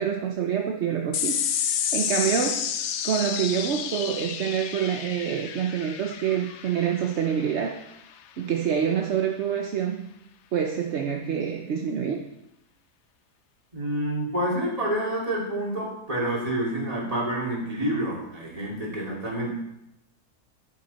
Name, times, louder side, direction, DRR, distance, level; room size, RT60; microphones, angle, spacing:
voice 1, 0.0-1.4 1.9-2.7 3.0-7.8 8.4-10.1 10.5-12.2, right 8 dB, 55° right, 4 dB, 0.8 m, -26 dB
sound 1, 1.1-7.9, left 8 dB, 60° left, 0.7 m, -30 dB
voice 2, 13.7-19.5, right 1 dB, 20° right, -4 dB, 2.7 m, -28 dB
10.5 x 8.9 x 4.1 m, 0.84 s
omnidirectional pair, 1.7 m